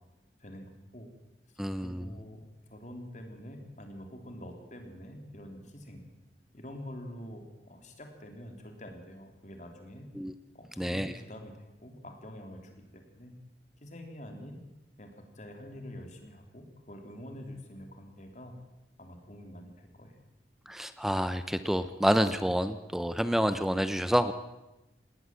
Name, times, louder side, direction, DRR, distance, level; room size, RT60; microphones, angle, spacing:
voice 1, 0.4-1.1 1.5-2.4 2.7-6.0 6.5-10.1 10.5-13.3 13.8-14.6 15.0-18.5 19.0-20.1, equal, 40° left, 4 dB, 3.4 m, -46 dB
voice 2, 1.6-2.1 10.1-10.3 10.8-11.1 20.7-24.3, equal, ahead, 12 dB, 0.7 m, -28 dB
19.5 x 18.0 x 7.7 m, 1.0 s
head